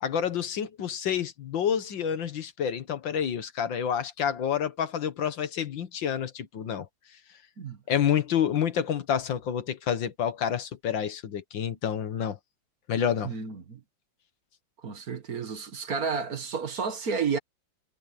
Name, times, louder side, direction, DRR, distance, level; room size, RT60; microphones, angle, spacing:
voice 1, 0.0-6.9 7.9-12.4 12.9-13.3, left 8 dB, 85° left, 2.1 m, -28 dB
voice 2, 13.2-13.8 14.8-17.4, right 5 dB, 55° right, 2.0 m, -31 dB
omnidirectional pair, 2.0 m